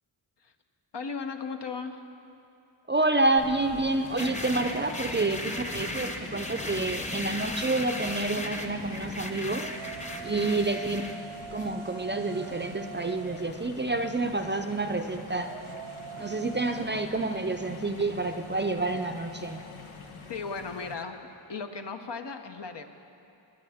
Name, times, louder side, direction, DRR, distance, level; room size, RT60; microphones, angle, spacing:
voice 1, 0.9-2.0 20.3-21.2 21.5-22.8, left 5 dB, 60° left, 6 dB, 0.9 m, -36 dB
voice 2, 2.9-9.7 10.2-11.0 11.5-15.5 16.2-19.6, right 2 dB, 25° right, 6 dB, 0.6 m, -28 dB
sound 1, 3.4-20.9, left 5 dB, 85° left, 0.9 m, -46 dB
sound 2, 4.2-11.1, left 1 dB, 15° left, 0.9 m, -36 dB
sound 3, 6.4-16.9, right 7 dB, 75° right, 0.8 m, -46 dB
19.5 x 8.6 x 3.5 m, 2.7 s
cardioid pair, 45°, 48 cm